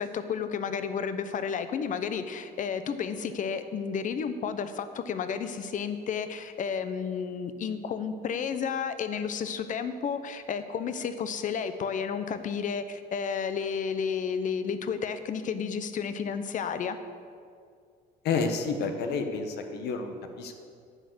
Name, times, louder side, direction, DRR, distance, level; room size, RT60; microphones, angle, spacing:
voice 1, 0.0-17.0, left 6 dB, 50° left, 11 dB, 0.8 m, -32 dB
voice 2, 18.2-20.6, left 4 dB, 75° left, 5 dB, 1.1 m, -30 dB
9.9 x 6.5 x 7.9 m, 2.2 s
cardioid pair, 110°, 17 cm